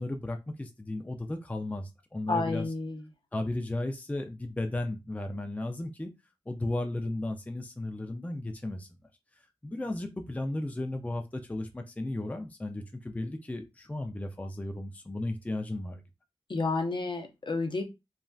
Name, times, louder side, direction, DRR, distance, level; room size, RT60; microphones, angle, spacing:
voice 1, 0.0-2.6 3.3-6.1 6.5-8.9 9.6-16.0, left 2 dB, 15° left, 0.4 m, -35 dB
voice 2, 2.3-3.0 16.5-17.8, left 3 dB, 55° left, 0.6 m, -30 dB
3.2 x 2.5 x 2.3 m
wide cardioid pair, 75°, 10 cm